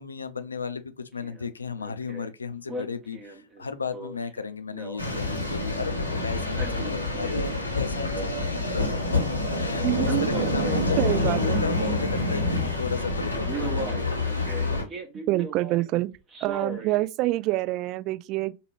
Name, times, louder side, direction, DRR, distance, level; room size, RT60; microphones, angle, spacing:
voice 1, 0.0-9.2 9.6-14.7, left 4 dB, 75° left, 0.5 m, -35 dB
Male speech man speaking, 1.2-1.5 1.8-2.3 2.7-5.9 6.3-7.7 8.0-8.8 10.0-12.3 12.8-13.0 13.5-15.9 16.3-17.1 17.5-17.6, right 2 dB, 25° right, 1.0 m, -38 dB
sound 1, 5.0-14.8, left 2 dB, 90° right, 1.2 m, -27 dB
voice 2, 9.8-10.3 11.0-11.6 15.3-16.1 16.4-18.5, right 18 dB, 40° right, 0.4 m, -26 dB
4.7 x 2.4 x 3.3 m
figure-of-eight pair, 90°, 0 cm